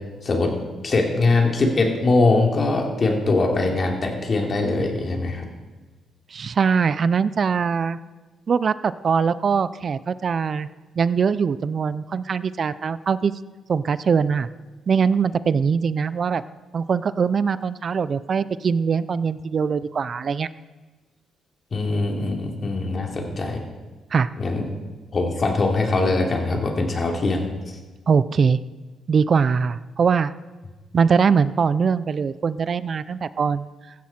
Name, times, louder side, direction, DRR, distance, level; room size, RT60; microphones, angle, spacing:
voice 1, 0.2-0.6 0.8-5.5 21.7-23.6 24.4-24.6 25.1-27.5, left 3 dB, 40° left, 1 dB, 3.0 m, -22 dB
voice 2, 6.3-8.0 8.5-10.7 11.0-13.3 13.7-14.5 14.9-16.4 16.7-20.5 24.1-24.3 28.1-28.6 29.1-30.3 30.9-33.7, right 6 dB, 45° right, 16 dB, 0.6 m, -22 dB
15.5 x 13.5 x 4.4 m, 1.3 s
cardioid pair, 90°, 0 cm